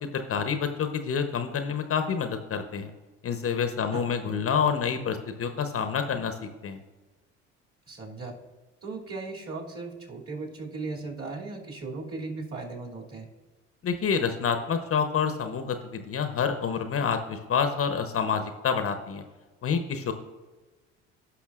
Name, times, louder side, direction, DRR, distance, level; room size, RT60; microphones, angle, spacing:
voice 1, 0.0-2.9 3.2-6.8 13.8-19.2 19.6-20.1, left 6 dB, 40° left, 8 dB, 0.8 m, -28 dB
voice 2, 7.9-8.4 8.8-13.3, right 3 dB, 40° right, -1 dB, 2.7 m, -37 dB
15.5 x 5.8 x 2.4 m, 1.3 s
hypercardioid pair, 65°, 35 cm